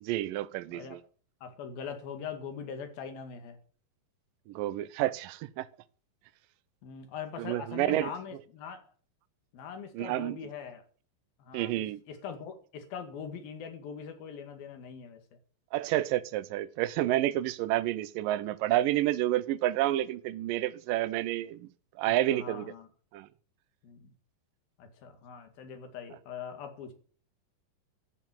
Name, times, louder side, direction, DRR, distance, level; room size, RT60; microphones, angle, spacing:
voice 1, 0.0-1.0 4.5-5.7 7.4-8.1 9.9-10.4 11.5-12.0 15.7-21.7 22.0-22.7 23.1-23.3, right 14 dB, 75° right, 2.4 m, -29 dB
voice 2, 1.4-3.6 6.8-8.8 9.5-10.9 11.4-15.2 22.1-22.9 23.8-24.1 24.8-26.9, left 7 dB, 85° left, 3.9 m, -42 dB
14.0 x 7.0 x 9.0 m
omnidirectional pair, 4.1 m